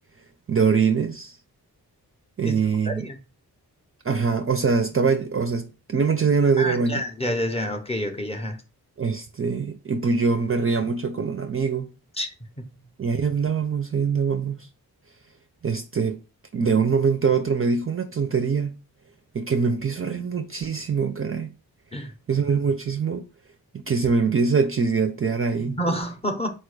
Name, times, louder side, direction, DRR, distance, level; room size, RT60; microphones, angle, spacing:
voice 1, 0.5-1.4 2.4-3.1 4.0-7.0 9.0-11.9 13.0-14.7 15.6-16.2 16.5-18.7 19.3-21.5 22.3-23.3 23.7-25.8, right 5 dB, 35° right, 0.4 m, -23 dB
voice 2, 2.9-3.2 6.6-8.6 12.2-12.3 12.6-12.7 21.9-22.1 25.6-26.5, equal, 15° left, 0.6 m, -28 dB
4.3 x 2.2 x 4.7 m
wide cardioid pair, 135°, 39 cm